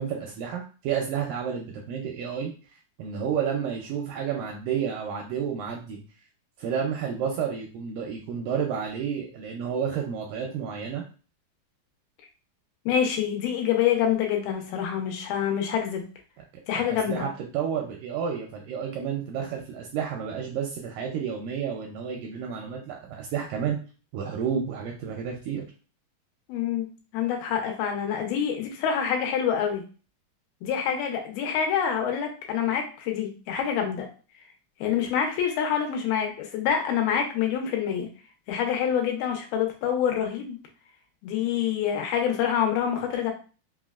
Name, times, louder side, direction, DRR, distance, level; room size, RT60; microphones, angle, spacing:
voice 1, 0.0-2.5 3.0-6.0 6.6-11.0 16.8-17.3 17.5-23.8 24.1-25.6, right 7 dB, 85° right, 1 dB, 1.9 m, -30 dB
voice 2, 12.9-16.1 16.7-17.3 26.5-26.9 27.1-29.8 30.6-34.1 34.8-38.1 38.5-40.6 41.2-43.3, left 8 dB, 85° left, 2 dB, 2.6 m, -26 dB
5.7 x 2.1 x 2.3 m, 0.36 s
omnidirectional pair, 4.3 m